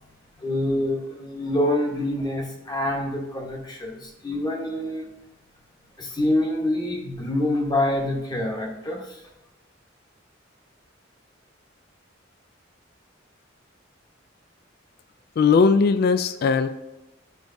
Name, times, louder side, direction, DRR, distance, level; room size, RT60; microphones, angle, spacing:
voice 1, 0.4-5.1 6.0-9.2, left 1 dB, 20° left, 0 dB, 1.0 m, -26 dB
voice 2, 15.4-16.8, left 5 dB, 55° left, 11 dB, 0.3 m, -19 dB
9.3 x 4.6 x 2.6 m, 0.97 s
head